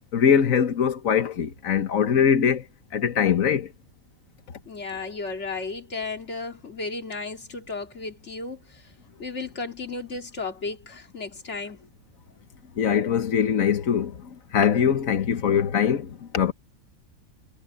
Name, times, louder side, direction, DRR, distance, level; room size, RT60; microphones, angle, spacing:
voice 1, 0.1-2.6 2.9-3.7 12.8-16.5, left 8 dB, 70° left, 1.6 m, -22 dB
voice 2, 4.7-8.9 9.2-11.8, left 3 dB, 55° left, 2.6 m, -34 dB
omnidirectional pair, 1.5 m